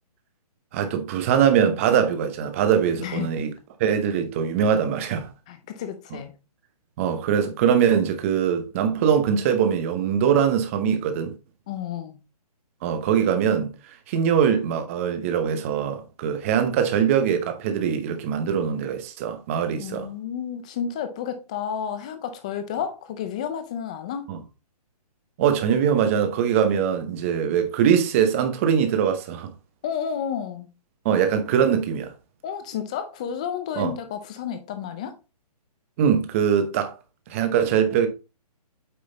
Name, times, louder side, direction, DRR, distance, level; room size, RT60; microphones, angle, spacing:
voice 1, 0.7-3.5 3.8-5.3 7.0-11.4 12.8-13.7 14.1-20.1 24.3-24.4 25.4-29.5 31.0-32.1 33.8-33.9 36.0-36.9 37.3-38.1, right 8 dB, 20° right, 0.9 m, -22 dB
voice 2, 3.0-3.3 5.5-6.3 11.7-12.2 19.8-24.3 29.8-30.7 32.4-35.1, left 8 dB, 10° left, 0.4 m, -31 dB
8.6 x 3.8 x 4.0 m
hypercardioid pair, 165°, 20 cm